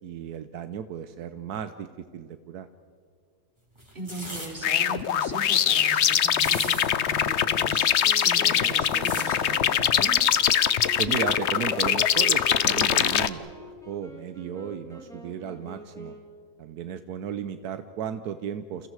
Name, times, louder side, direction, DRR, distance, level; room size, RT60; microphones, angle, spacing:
voice 1, 0.0-2.7 11.0-13.5 13.9-16.2 16.6-18.9, right 8 dB, 80° right, 10 dB, 1.3 m, -34 dB
sound 1, 3.8-4.5 5.0-5.1 5.3-5.8 6.2-6.9 7.2-7.3 7.5-9.3 10.1-10.3, right 1 dB, 15° right, 5.5 m, -39 dB
voice 2, 3.9-10.2, right 2 dB, 35° right, 0 dB, 4.6 m, -39 dB
sound 2, 4.6-13.3, left 9 dB, 55° left, 0.9 m, -23 dB
Wind instrument woodwind instrument, 8.0-16.4, equal, ahead, 3.4 m, -44 dB
29.5 x 29.0 x 4.8 m, 2.1 s
omnidirectional pair, 1.6 m